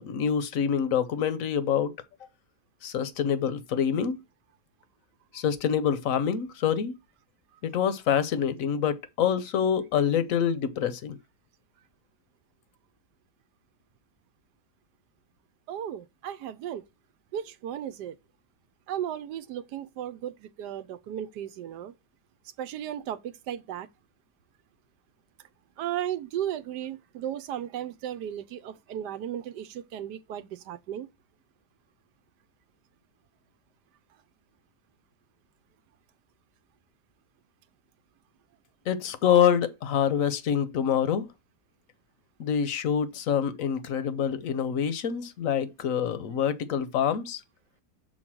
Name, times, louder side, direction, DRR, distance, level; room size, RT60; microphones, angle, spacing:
voice 1, 0.0-1.9 2.8-4.2 5.3-7.0 7.6-11.2 38.9-41.3 42.4-47.4, left 8 dB, 60° left, 1.0 m, -26 dB
voice 2, 15.7-16.8 17.3-18.2 18.9-21.9 22.6-23.9 25.8-31.1, right 10 dB, 80° right, 1.2 m, -35 dB
6.5 x 3.9 x 6.1 m
omnidirectional pair, 1.8 m